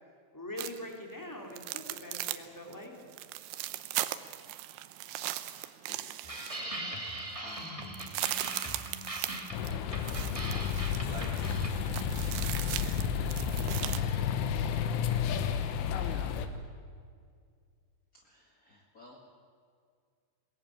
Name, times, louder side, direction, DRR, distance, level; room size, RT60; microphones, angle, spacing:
voice 1, 0.3-2.9, left 1 dB, 5° left, 1 dB, 2.6 m, -43 dB
sound 1, 0.6-0.9 1.5-2.5 2.7-2.8 3.1-6.8 7.2-7.3 7.5-14.0, right 15 dB, 75° right, 2.8 m, -38 dB
voice 2, 5.3-6.8 7.4-8.5 10.3-11.3 13.8-14.6 15.2-16.5 18.2-19.2, left 1 dB, 40° left, -2 dB, 1.3 m, -52 dB
sound 2, 6.2-12.0, right 1 dB, 45° right, 0.4 m, -40 dB
sound 3, 9.5-16.5, left 7 dB, 85° left, 3.7 m, -31 dB
22.0 x 19.5 x 9.0 m, 2.1 s
omnidirectional pair, 5.5 m